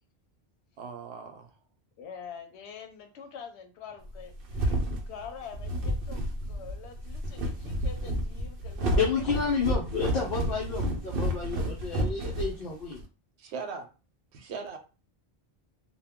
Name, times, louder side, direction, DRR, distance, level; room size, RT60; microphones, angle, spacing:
voice 1, 0.8-1.5 13.4-13.9 14.3-14.8, right 5 dB, 90° right, 5 dB, 0.9 m, -39 dB
voice 2, 2.0-6.2 6.5-9.7, left 7 dB, 85° left, 6 dB, 0.9 m, -45 dB
sound 1, 4.1-13.0, right 1 dB, 65° right, 0.7 m, -30 dB
voice 3, 9.0-13.0, left 5 dB, 65° left, -2 dB, 0.8 m, -30 dB
2.2 x 2.1 x 3.4 m, 0.32 s
omnidirectional pair, 1.1 m